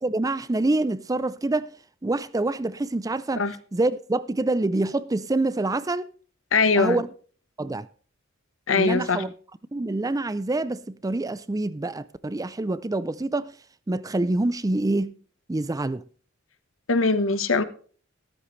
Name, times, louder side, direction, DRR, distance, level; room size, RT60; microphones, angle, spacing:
voice 1, 0.0-1.7 2.0-6.1 6.8-7.1 7.6-7.9 8.7-9.3 9.7-13.5 13.9-15.1 15.5-16.0, right 2 dB, 20° right, 0.5 m, -26 dB
voice 2, 6.5-7.0 8.7-9.2 16.9-17.6, left 4 dB, 75° left, 1.2 m, -21 dB
13.5 x 13.0 x 3.2 m
head